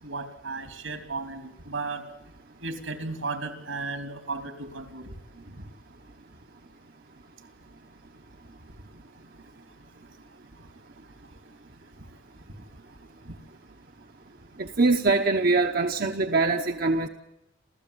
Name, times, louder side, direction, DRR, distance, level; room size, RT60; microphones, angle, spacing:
voice 1, 0.0-2.0 2.6-5.2 5.5-5.6 12.0-12.1 13.3-13.4, right 3 dB, 80° right, 7 dB, 3.2 m, -35 dB
voice 2, 14.6-17.1, right 3 dB, 50° right, 5 dB, 1.0 m, -23 dB
28.5 x 14.5 x 8.4 m, 0.92 s
head